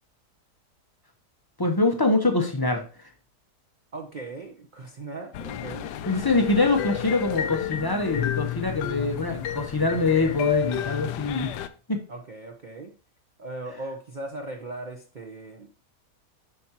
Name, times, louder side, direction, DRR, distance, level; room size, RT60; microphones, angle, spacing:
voice 1, 1.6-2.9 6.1-11.5 11.9-12.0, left 3 dB, 30° left, 4 dB, 0.4 m, -24 dB
voice 2, 3.9-5.9 12.1-12.9 13.4-15.7, right 2 dB, 45° right, 3 dB, 0.6 m, -38 dB
sound 1, 5.3-11.7, left 11 dB, 85° left, 1.2 m, -31 dB
8.3 x 5.8 x 2.9 m, 0.37 s
omnidirectional pair, 1.8 m